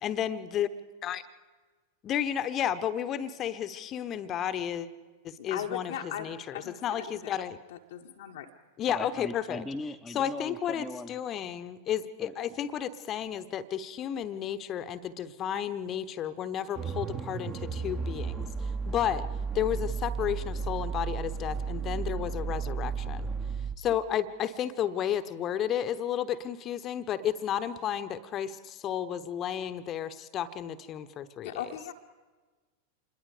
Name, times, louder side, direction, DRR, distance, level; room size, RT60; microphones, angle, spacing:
voice 1, 0.0-0.7 1.0-1.2 2.0-4.9 5.2-5.9 6.2-6.4 6.8-7.6 8.8-9.6 10.1-18.5 18.9-19.2 19.5-23.2 23.8-31.5, left 10 dB, 30° left, 13 dB, 1.0 m, -32 dB
voice 2, 5.4-7.3 7.7-8.5 31.4-31.9, left 10 dB, 60° left, 2 dB, 1.1 m, -39 dB
voice 3, 8.9-11.1 12.2-12.3, left 2 dB, 5° left, 0 dB, 1.0 m, -38 dB
sound 1, 16.7-23.8, right 5 dB, 20° right, 1.2 m, -34 dB
27.0 x 21.5 x 5.0 m, 1.3 s
figure-of-eight pair, 90°, 0 cm